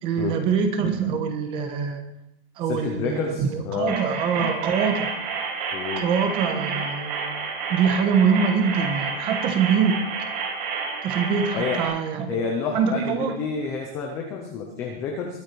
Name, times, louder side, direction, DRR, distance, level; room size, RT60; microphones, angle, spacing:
voice 1, 0.0-2.0 2.6-5.1 6.0-7.3 7.7-9.9 11.0-12.3 12.7-13.4, right 6 dB, 15° right, 7 dB, 1.1 m, -24 dB
voice 2, 2.6-4.0 5.7-6.1 11.5-11.9 12.3-15.4, left 5 dB, 10° left, 2 dB, 0.5 m, -29 dB
sound 1, 3.9-11.9, right 5 dB, 45° right, 5.8 m, -30 dB
21.5 x 8.3 x 4.5 m, 0.79 s
supercardioid pair, 175°, 31 cm